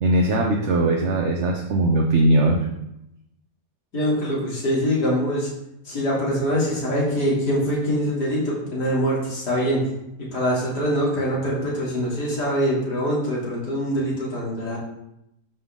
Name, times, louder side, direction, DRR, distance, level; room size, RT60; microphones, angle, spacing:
voice 1, 0.0-2.7, right 1 dB, 50° right, 1 dB, 1.1 m, -20 dB
voice 2, 3.9-5.5 5.9-9.8 10.2-14.8, equal, 70° left, -6 dB, 3.9 m, -24 dB
12.5 x 5.7 x 3.8 m, 0.82 s
omnidirectional pair, 1.8 m